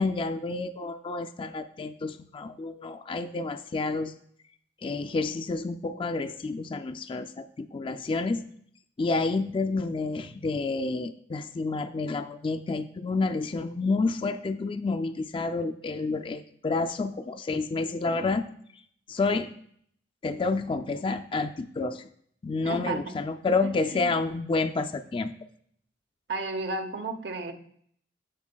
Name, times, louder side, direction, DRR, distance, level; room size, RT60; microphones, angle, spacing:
voice 1, 0.0-4.1 4.8-8.4 9.0-18.4 19.1-19.5 20.2-22.1 22.4-25.3, left 3 dB, 30° left, 7 dB, 0.3 m, -29 dB
voice 2, 22.6-23.1 23.9-24.1 26.3-27.5, right 3 dB, 70° right, 7 dB, 0.8 m, -33 dB
14.0 x 5.2 x 2.3 m, 0.64 s
head